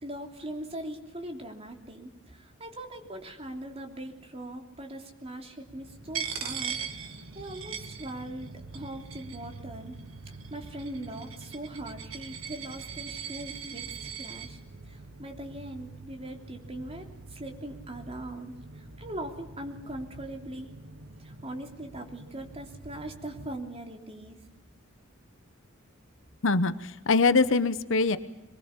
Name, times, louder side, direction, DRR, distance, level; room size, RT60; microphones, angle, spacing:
voice 1, 0.0-10.0 10.2-13.8 14.2-14.6 14.8-20.7 21.2-24.4, right 1 dB, 30° right, 3 dB, 3.2 m, -41 dB
sound 1, 5.7-23.6, right 2 dB, 65° right, 1.4 m, -47 dB
Coin (dropping), 6.1-8.5 8.7-9.6 10.3-14.5, right 8 dB, 90° right, 2.1 m, -39 dB
voice 2, 26.4-28.2, left 3 dB, 70° left, 13 dB, 1.1 m, -23 dB
23.5 x 22.5 x 7.2 m, 0.98 s
head